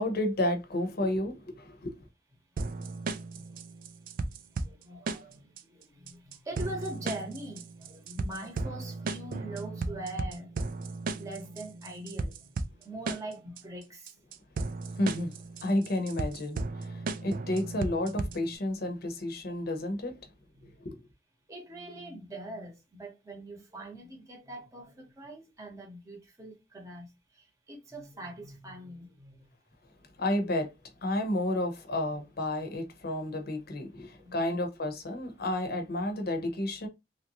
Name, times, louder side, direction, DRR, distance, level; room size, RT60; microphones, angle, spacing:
voice 1, 0.0-1.9 14.9-15.3 15.6-20.1 20.8-21.0 30.2-30.7 31.0-36.9, left 1 dB, 55° left, 0.8 m, -31 dB
sound 1, 2.6-18.6, right 3 dB, 50° right, 0.3 m, -36 dB
voice 2, 4.5-10.5 11.2-12.5 12.8-14.1 17.0-17.1 19.5-19.6 20.5-20.7 21.5-27.1 27.4-29.5 32.1-32.2 34.2-34.6, right 1 dB, 15° right, 1.0 m, -43 dB
3.2 x 2.6 x 2.9 m
head